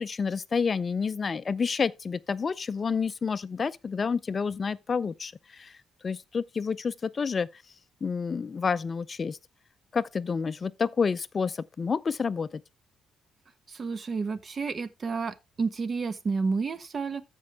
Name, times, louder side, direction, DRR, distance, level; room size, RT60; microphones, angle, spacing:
voice 1, 0.0-5.8 6.0-7.6 8.0-9.4 9.9-12.6, left 5 dB, 40° left, 0.4 m, -29 dB
voice 2, 13.7-17.2, right 4 dB, 40° right, 1.2 m, -30 dB
14.0 x 5.3 x 3.5 m
cardioid pair, 90°, 0 cm